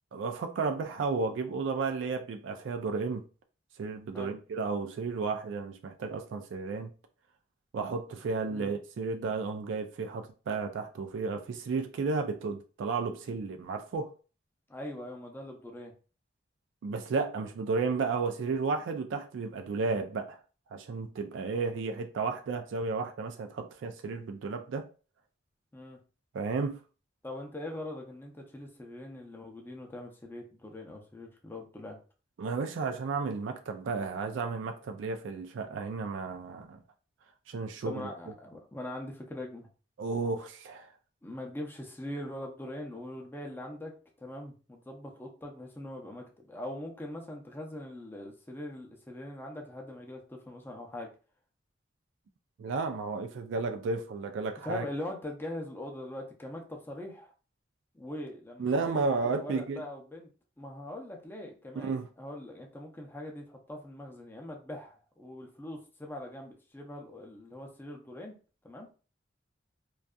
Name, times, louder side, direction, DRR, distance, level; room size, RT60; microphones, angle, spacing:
voice 1, 0.1-3.2 3.8-6.9 7.7-14.1 16.8-20.4 20.7-24.9 26.3-26.8 32.4-36.8 37.5-38.0 40.0-40.9 52.6-54.9 58.6-59.8 61.8-62.1, right 4 dB, 85° right, 0.3 m, -33 dB
voice 2, 14.7-15.9 25.7-26.0 27.2-32.0 37.8-39.7 41.2-43.9 44.2-51.1 54.6-57.3 57.9-60.3 60.6-61.9 62.2-68.3 68.6-68.9, left 1 dB, 10° left, 0.5 m, -42 dB
2.5 x 2.3 x 2.2 m
head